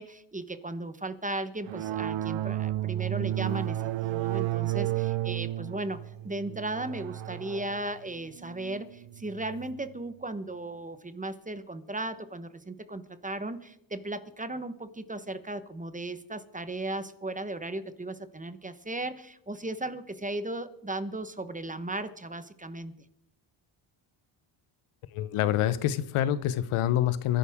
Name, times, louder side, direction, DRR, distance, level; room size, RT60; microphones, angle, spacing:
voice 1, 0.0-22.9, right 2 dB, 15° right, 12 dB, 1.2 m, -36 dB
sound 1, 1.7-9.8, right 14 dB, 65° right, 0.6 m, -32 dB
voice 2, 25.1-27.4, left 11 dB, 90° left, 15 dB, 1.0 m, -26 dB
26.0 x 11.0 x 3.6 m, 0.77 s
cardioid pair, 75°, 49 cm